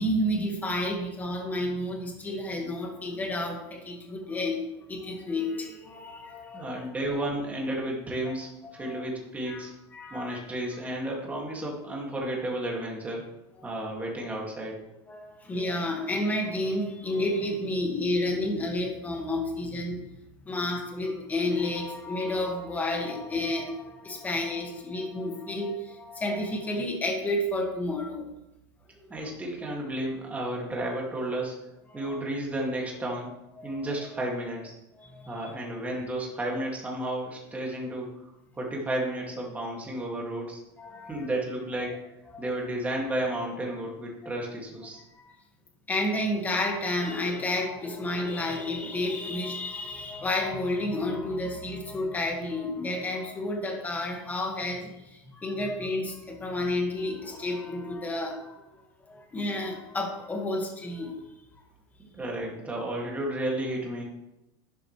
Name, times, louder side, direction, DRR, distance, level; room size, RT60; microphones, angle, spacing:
voice 1, 0.0-4.6 4.9-6.8 8.2-8.3 8.6-9.0 9.5-9.6 9.9-10.4 15.1-20.0 20.5-28.3 31.9-32.1 33.7-34.0 34.9-35.5 40.8-41.3 42.3-42.5 45.2-45.4 45.9-58.6 59.0-61.3, left 1 dB, 10° left, 1 dB, 2.0 m, -31 dB
voice 2, 6.5-9.7 10.1-13.2 13.6-14.8 29.1-31.6 31.9-33.3 33.6-34.7 35.3-38.2 38.6-40.6 41.1-42.0 42.4-45.0 62.0-64.0, right 1 dB, 10° right, -2 dB, 2.4 m, -32 dB
11.5 x 10.5 x 3.4 m, 0.92 s
supercardioid pair, 160°, 13 cm